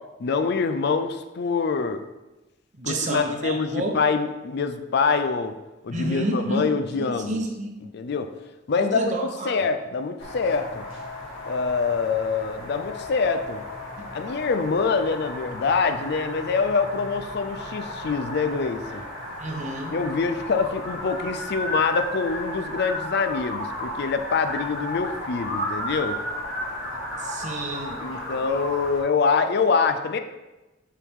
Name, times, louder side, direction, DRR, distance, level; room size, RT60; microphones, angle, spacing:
voice 1, 0.2-2.0 2.8-5.5 5.8-7.4 7.9-8.3 8.7-9.1 9.4-10.8 11.5-13.6 14.1-19.0 19.9-26.2 28.0-30.2, left 4 dB, 60° left, 9 dB, 0.4 m, -25 dB
voice 2, 2.8-3.9 5.9-6.7 7.0-7.7 8.8-9.7 14.0-14.1 19.4-20.0 27.2-28.0, right 1 dB, 40° right, 2 dB, 0.9 m, -29 dB
sound 1, 10.2-29.0, left 1 dB, 85° left, 2.1 m, -34 dB
7.0 x 4.7 x 3.6 m, 1.1 s
head